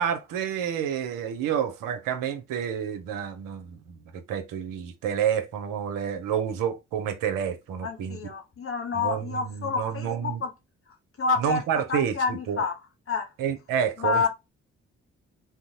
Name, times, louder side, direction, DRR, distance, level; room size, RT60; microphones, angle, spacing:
voice 1, 0.0-4.0 4.3-8.2 8.9-10.4 11.4-12.6 13.4-14.3, right 8 dB, 65° right, 0.7 m, -29 dB
voice 2, 7.8-10.5 11.2-11.6 11.9-12.7 13.1-13.3 14.0-14.3, left 4 dB, 40° left, 1.0 m, -28 dB
2.5 x 2.0 x 2.7 m
hypercardioid pair, 45°, 35 cm